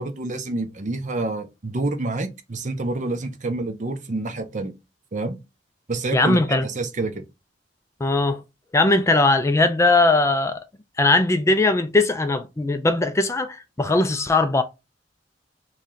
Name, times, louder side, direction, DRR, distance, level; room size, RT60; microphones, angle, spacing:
voice 1, 0.0-4.7 5.1-5.4 5.9-7.2, right 2 dB, 45° right, 0.6 m, -28 dB
voice 2, 6.1-6.7 8.0-8.4 8.7-10.6 11.0-14.6, left 2 dB, 15° left, 0.4 m, -19 dB
3.1 x 2.8 x 3.8 m
head